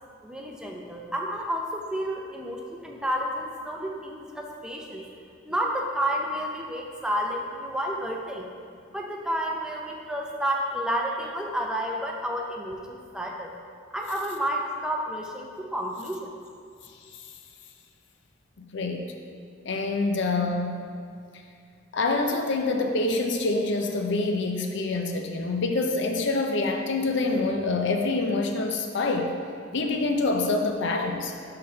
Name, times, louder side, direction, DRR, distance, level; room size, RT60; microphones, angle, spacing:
voice 1, 0.2-5.1 5.4-8.5 8.9-13.5 13.9-16.4, equal, 5° right, 0 dB, 0.6 m, -30 dB
voice 2, 18.6-19.1 19.6-20.8 21.9-29.3 29.7-31.3, left 3 dB, 65° left, 3 dB, 0.6 m, -26 dB
5.4 x 4.0 x 5.5 m, 2.4 s
head